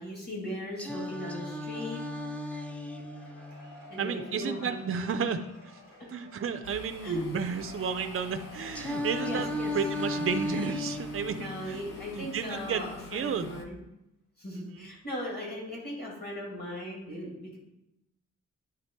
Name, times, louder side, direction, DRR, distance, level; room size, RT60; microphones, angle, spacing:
voice 1, 0.0-2.0 3.9-5.3 7.0-7.2 9.2-9.7 11.4-13.8 14.4-17.6, equal, 30° left, -3 dB, 2.3 m, -38 dB
Singing, 0.8-4.8 8.8-12.8, left 2 dB, 5° left, 0.6 m, -36 dB
Cheering / Applause / Crowd, 2.8-11.7, left 1 dB, 55° left, 3.1 m, -53 dB
voice 2, 4.0-5.4 6.1-11.8 12.2-12.8 13.1-13.6 14.5-14.9, right 6 dB, 45° right, 8 dB, 0.5 m, -32 dB
sound 1, 6.6-13.7, left 3 dB, 80° left, 0.8 m, -47 dB
9.5 x 3.7 x 4.3 m, 0.84 s
wide cardioid pair, 130°, 32 cm